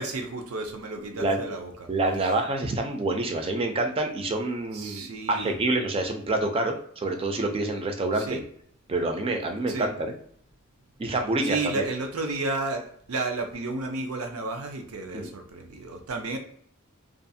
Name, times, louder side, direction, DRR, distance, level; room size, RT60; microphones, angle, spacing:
voice 1, 0.0-1.9 4.7-5.5 8.2-8.4 9.7-9.9 11.4-16.4, right 3 dB, 80° right, 4 dB, 0.6 m, -32 dB
voice 2, 1.9-8.4 8.9-10.1 11.0-11.9 15.1-15.3, right 2 dB, 25° right, 4 dB, 0.4 m, -27 dB
2.5 x 2.3 x 2.6 m, 0.64 s
head